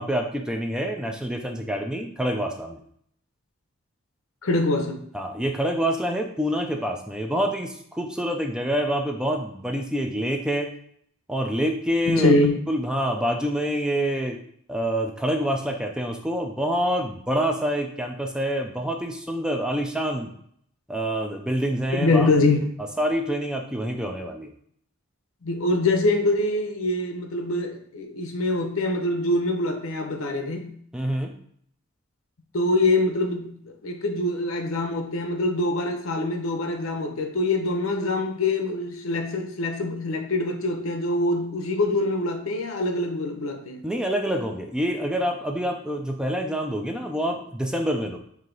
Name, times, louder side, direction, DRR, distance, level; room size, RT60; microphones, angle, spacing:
voice 1, 0.0-2.8 5.1-10.7 11.3-12.4 12.7-14.4 14.7-20.3 20.9-22.3 23.0-24.5 30.9-31.3 43.8-48.2, equal, 5° right, 0.4 m, -26 dB
voice 2, 4.4-5.0 12.1-12.6 22.0-22.7 25.4-30.8 32.5-43.9, left 2 dB, 80° left, 0.8 m, -24 dB
4.8 x 2.8 x 3.8 m
head